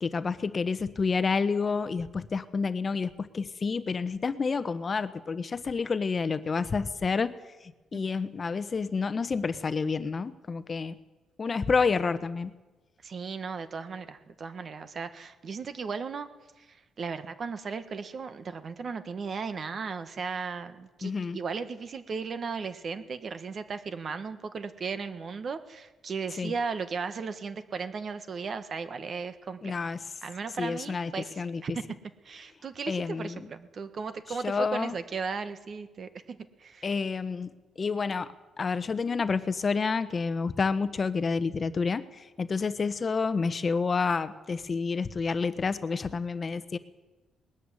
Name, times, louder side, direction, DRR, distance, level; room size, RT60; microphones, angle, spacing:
voice 1, 0.0-7.4 7.9-11.0 11.4-12.5 21.0-21.4 26.4-26.5 29.6-30.0 30.6-31.1 31.4-31.6 32.9-33.5 34.4-34.9 36.8-37.5 37.8-46.8, left 4 dB, 30° left, 13 dB, 1.1 m, -29 dB
voice 2, 13.0-16.3 16.6-29.8 30.2-31.8 32.2-36.9, right 5 dB, 45° right, 10 dB, 1.5 m, -36 dB
20.0 x 13.5 x 9.9 m, 1.1 s
cardioid pair, 130°, 0 cm